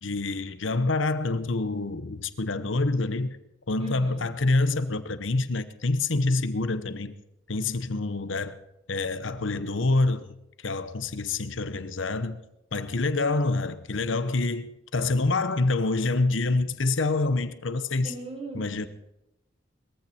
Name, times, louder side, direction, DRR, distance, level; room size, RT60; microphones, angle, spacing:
voice 1, 0.0-3.4 3.7-7.1 7.5-8.5 8.9-10.3 10.6-12.4 12.7-18.1 18.5-18.9, left 3 dB, 75° left, 1.0 m, -26 dB
voice 2, 3.8-4.3 18.0-18.9, right 2 dB, 30° right, 3.9 m, -39 dB
21.0 x 15.0 x 4.4 m
head